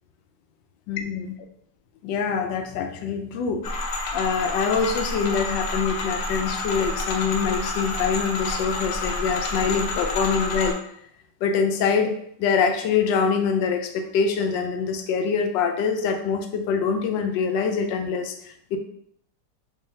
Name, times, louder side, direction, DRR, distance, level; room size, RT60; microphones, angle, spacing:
voice 1, 0.9-1.3 2.0-3.6 4.1-10.8 11.4-12.1 12.4-18.8, left 6 dB, 90° left, 5 dB, 1.3 m, -24 dB
sound 1, 3.6-10.7, left 2 dB, 60° left, 0.8 m, -29 dB
3.6 x 3.2 x 2.7 m, 0.69 s
omnidirectional pair, 1.9 m